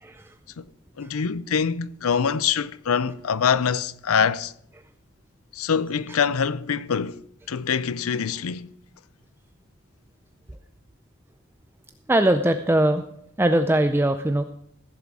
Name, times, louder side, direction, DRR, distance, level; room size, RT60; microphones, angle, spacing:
voice 1, 0.0-0.3 1.0-1.1 6.1-6.2 12.1-13.0 13.4-14.4, right 1 dB, 10° right, 0.4 m, -21 dB
voice 2, 1.0-4.5 5.5-7.2 7.5-8.7, left 6 dB, 80° left, 0.5 m, -24 dB
15.5 x 7.2 x 4.7 m
head